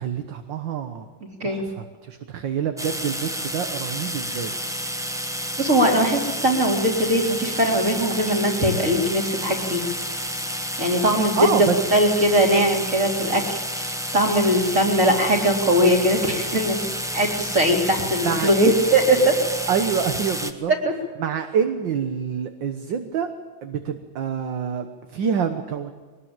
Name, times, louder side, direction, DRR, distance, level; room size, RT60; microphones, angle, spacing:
voice 1, 0.0-1.1 1.4-4.5 11.4-11.8 18.2-18.8 19.7-20.7 21.2-23.3 23.6-24.9 25.1-25.9, right 7 dB, 60° right, 7 dB, 1.8 m, -26 dB
voice 2, 1.2-1.6 5.6-9.9 10.8-13.4 13.7-13.9 14.1-16.8 17.1-19.4 20.8-20.9, right 1 dB, 35° right, 1 dB, 4.1 m, -20 dB
sound 1, 2.8-20.5, equal, ahead, 0.9 m, -30 dB
23.0 x 20.0 x 8.9 m, 1.4 s
omnidirectional pair, 2.4 m